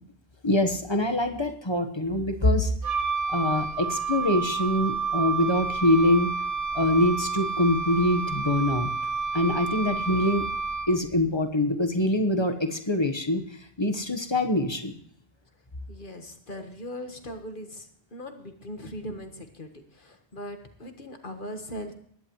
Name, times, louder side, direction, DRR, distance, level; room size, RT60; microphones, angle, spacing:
voice 1, 0.4-2.7 3.3-6.3 6.7-8.9 9.3-10.5 10.9-13.4 13.8-14.9, left 1 dB, 25° left, 6 dB, 1.2 m, -24 dB
Wind instrument woodwind instrument, 2.8-11.1, right 4 dB, 50° right, 1.4 m, -30 dB
voice 2, 15.9-21.9, equal, 50° left, 5 dB, 1.6 m, -40 dB
21.0 x 11.0 x 3.1 m, 0.64 s
omnidirectional pair, 1.1 m